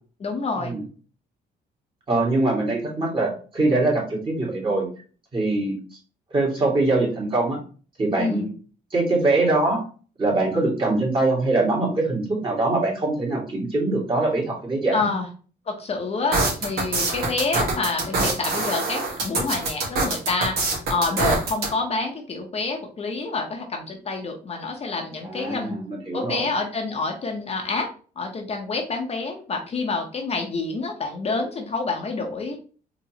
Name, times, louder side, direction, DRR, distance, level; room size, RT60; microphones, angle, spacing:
voice 1, 0.2-0.7 8.2-8.5 14.9-15.3 15.7-25.8 26.1-27.9 28.2-32.6, left 3 dB, 40° left, 2 dB, 0.8 m, -28 dB
voice 2, 2.1-4.9 5.3-5.8 6.3-7.6 8.0-8.5 8.9-9.8 10.2-15.1 25.2-26.5, right 2 dB, 30° right, -3 dB, 2.0 m, -23 dB
sound 1, 16.3-21.7, right 3 dB, 70° right, 1.7 m, -24 dB
4.1 x 3.0 x 2.8 m, 0.39 s
cardioid pair, 105°, 17 cm